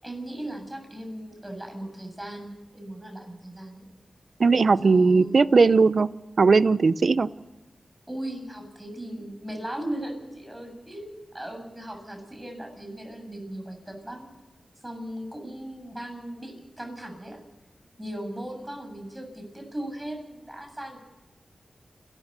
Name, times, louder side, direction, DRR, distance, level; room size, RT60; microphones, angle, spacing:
voice 1, 0.0-3.9 4.8-5.6 8.1-14.3 14.8-17.4 18.0-21.0, right 1 dB, 15° right, 4 dB, 7.5 m, -38 dB
voice 2, 4.4-6.1 6.4-7.3, right 4 dB, 65° right, 16 dB, 0.7 m, -18 dB
30.0 x 13.0 x 6.9 m, 1.0 s
cardioid pair, 60°, 0 cm